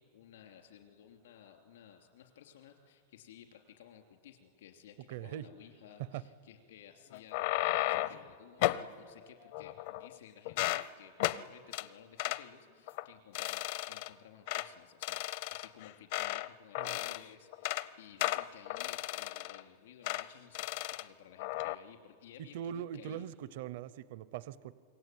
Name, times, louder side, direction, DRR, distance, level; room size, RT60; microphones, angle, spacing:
voice 1, 0.0-23.2, left 9 dB, 80° left, 5 dB, 3.0 m, -56 dB
voice 2, 5.1-5.4 6.1-6.2 16.8-17.0 22.5-24.7, right 10 dB, 50° right, 17 dB, 0.6 m, -41 dB
sound 1, 7.1-8.2 8.6-8.9 9.5-10.2 10.4-10.9 11.2-11.4 11.7-11.9 12.2-12.4 12.9-13.1 13.3-14.1 14.5-14.7 15.0-16.5 16.7-17.2 17.5-17.9 18.2-19.6 20.0-20.3 20.5-21.0 21.4-21.7, left 16 dB, 45° left, 0.6 m, -34 dB
27.0 x 23.0 x 9.2 m, 2.3 s
supercardioid pair, 175°, 0 cm